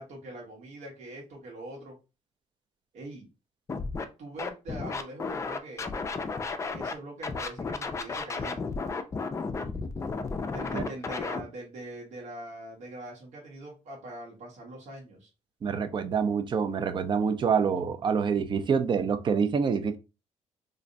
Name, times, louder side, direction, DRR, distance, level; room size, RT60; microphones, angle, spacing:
voice 1, 0.0-2.0 2.9-3.3 4.2-6.0 6.7-8.7 10.5-15.3, right 1 dB, 75° right, 1.2 m, -43 dB
Scratching (performance technique), 3.7-4.0 4.4-6.9 7.2-11.4, left 4 dB, 25° left, 0.4 m, -33 dB
voice 2, 15.6-20.0, right 6 dB, 40° right, 0.4 m, -26 dB
2.5 x 2.1 x 3.9 m
cardioid pair, 125°, 12 cm